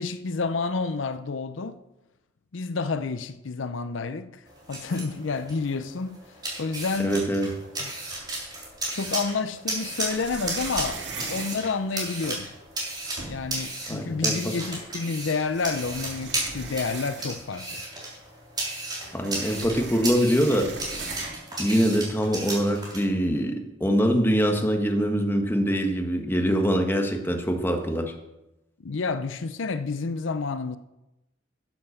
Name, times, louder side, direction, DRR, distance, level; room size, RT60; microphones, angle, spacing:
voice 1, 0.0-1.8 2.5-4.4 4.7-6.2 6.6-7.2 7.8-7.9 8.9-11.1 11.3-12.5 13.2-17.8 28.8-30.8, left 4 dB, 80° left, 0.6 m, -29 dB
sound 1, 4.5-23.0, right 2 dB, 20° right, 3.7 m, -34 dB
voice 2, 7.0-7.5 13.9-14.6 19.1-20.7 21.6-28.1, equal, 10° left, 1.4 m, -24 dB
sound 2, 8.1-8.9 9.7-12.4 12.9-13.0 13.2-13.7 14.7-14.8 15.4-17.6 17.9-18.0 18.3-21.6, right 4 dB, 60° right, 2.3 m, -39 dB
11.0 x 7.7 x 7.1 m
head